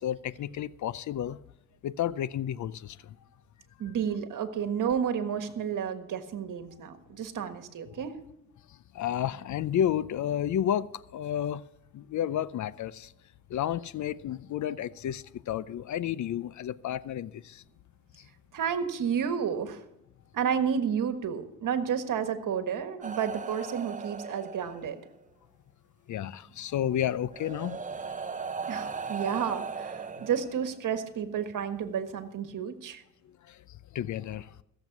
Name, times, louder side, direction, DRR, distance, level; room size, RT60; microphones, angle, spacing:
voice 1, 0.0-1.4 1.8-3.2 8.9-11.6 11.9-13.1 13.5-17.6 26.1-28.1 33.5-33.6 33.9-34.5, left 10 dB, 55° left, 0.6 m, -31 dB
voice 2, 3.8-8.2 18.5-19.8 20.3-25.0 28.7-33.0, right 7 dB, 60° right, 1.6 m, -31 dB
sound 1, 23.0-25.2 26.5-26.6 27.3-30.9 32.0-32.2, right 5 dB, 20° right, 0.7 m, -38 dB
15.5 x 7.6 x 6.0 m
cardioid pair, 90°, 35 cm